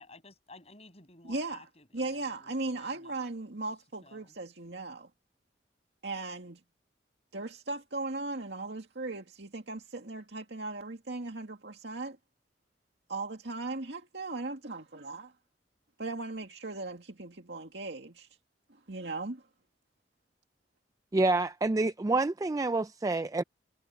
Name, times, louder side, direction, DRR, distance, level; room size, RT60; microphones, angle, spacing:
voice 1, 0.0-3.2 4.0-4.3, left 3 dB, 35° left, 6.5 m, -54 dB
voice 2, 1.3-1.7 1.9-5.1 6.0-6.6 7.3-12.2 13.1-15.3 16.0-18.3 18.7-19.4, right 2 dB, 80° right, 2.1 m, -38 dB
voice 3, 21.1-23.4, right 2 dB, 20° right, 0.3 m, -28 dB
head